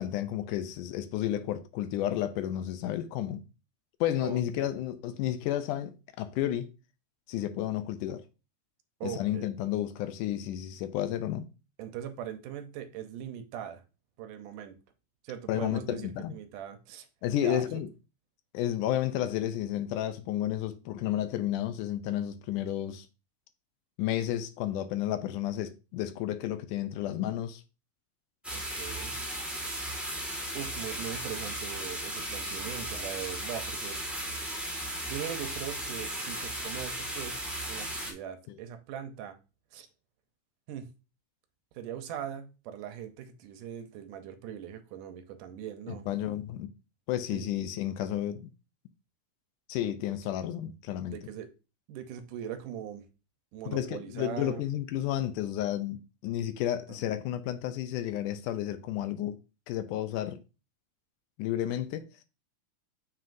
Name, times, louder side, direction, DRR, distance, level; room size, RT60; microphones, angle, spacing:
voice 1, 0.0-3.4 4.0-6.7 7.3-8.2 9.0-11.5 15.5-16.3 17.2-17.9 18.5-23.1 24.0-27.6 45.9-46.7 47.1-48.5 49.7-51.2 53.7-59.4 59.7-60.4 61.4-62.1, left 12 dB, 80° left, 2.0 m, -32 dB
voice 2, 4.2-4.7 9.0-9.5 11.8-13.8 14.2-14.8 15.2-17.1 17.4-17.8 28.5-29.2 29.6-29.8 30.5-34.0 35.1-39.4 39.7-39.9 40.7-40.9 41.7-46.1 47.3-47.5 51.1-51.5 51.9-53.0 53.5-54.6 56.7-57.0, right 10 dB, 75° right, 2.3 m, -40 dB
sound 1, 28.4-38.1, right 1 dB, ahead, 0.4 m, -36 dB
7.1 x 6.1 x 2.6 m
omnidirectional pair, 3.8 m